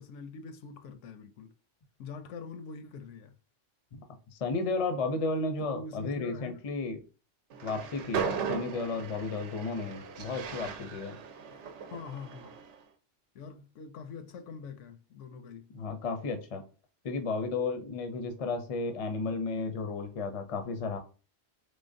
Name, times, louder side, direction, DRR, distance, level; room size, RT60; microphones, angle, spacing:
voice 1, 0.0-1.5 2.0-3.3 5.6-6.6 11.5-12.5 13.3-15.7, left 5 dB, 75° left, 0.9 m, -44 dB
voice 2, 4.3-7.0 7.6-11.2 15.7-16.6 17.0-21.0, left 3 dB, 40° left, 0.5 m, -33 dB
Train, 7.5-12.8, right 6 dB, 70° right, 0.9 m, -38 dB
3.7 x 3.3 x 2.6 m
omnidirectional pair, 1.3 m